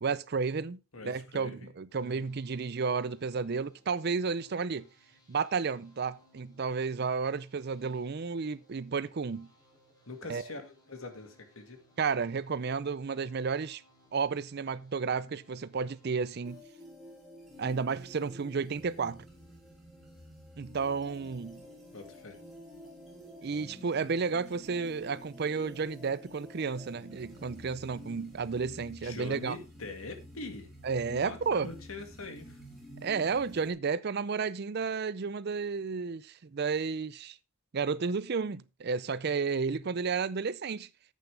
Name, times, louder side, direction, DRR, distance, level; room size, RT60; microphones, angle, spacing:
voice 1, 0.0-4.9 5.3-9.5 10.3-10.4 12.0-13.8 14.1-16.6 17.6-19.2 20.6-21.6 23.4-29.6 30.8-31.7 33.0-37.4 37.7-40.9, right 5 dB, 50° right, 0.5 m, -32 dB
voice 2, 0.9-2.3 10.1-11.8 21.9-22.4 29.0-30.7 31.1-32.6, left 3 dB, 90° left, 2.0 m, -44 dB
sound 1, 1.9-16.6, left 1 dB, 20° left, 2.8 m, -65 dB
sound 2, 16.4-33.7, equal, ahead, 3.2 m, -50 dB
10.5 x 8.4 x 3.3 m
head